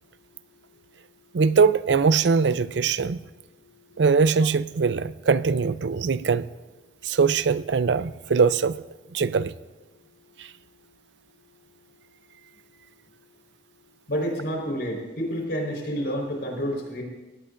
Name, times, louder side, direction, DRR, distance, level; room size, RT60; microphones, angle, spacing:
voice 1, 1.3-3.2 4.0-6.5 7.0-8.8 9.1-9.5 10.4-10.5, right 5 dB, 85° right, 0.5 m, -21 dB
voice 2, 14.1-17.0, equal, 65° left, 4.5 m, -29 dB
22.5 x 18.0 x 2.6 m
head